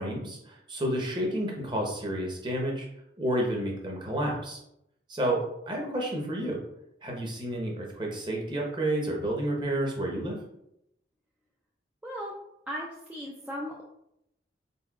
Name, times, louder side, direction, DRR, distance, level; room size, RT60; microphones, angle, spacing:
voice 1, 0.0-2.9 3.2-4.6 5.1-6.6 7.0-10.4, right 1 dB, 25° right, -1 dB, 0.9 m, -30 dB
voice 2, 12.0-12.3 12.7-13.8, equal, 10° right, -3 dB, 0.4 m, -37 dB
4.2 x 3.9 x 2.4 m, 0.80 s
head